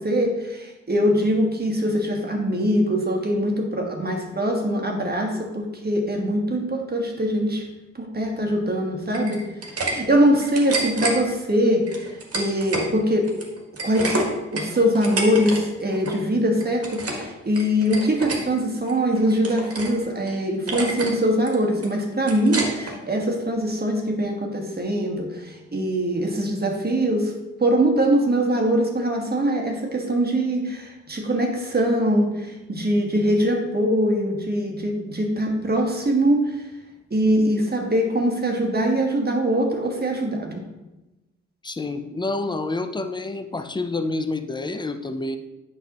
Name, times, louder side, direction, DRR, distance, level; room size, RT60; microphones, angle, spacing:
voice 1, 0.0-7.6 8.0-9.4 9.7-13.3 13.8-27.3 27.6-36.6 37.1-40.6, equal, 30° right, 2 dB, 1.4 m, -22 dB
sound 1, 9.1-9.9 10.3-11.2 11.9-12.9 13.2-15.6 15.9-16.2 16.6-17.3 17.5-18.4 18.9-20.0 20.3-20.4 20.7-21.2 21.5-22.9, right 2 dB, 50° right, 1.6 m, -28 dB
voice 2, 41.6-45.4, left 2 dB, 15° left, 8 dB, 0.6 m, -28 dB
8.1 x 5.5 x 3.0 m, 1.0 s
cardioid pair, 60°, 31 cm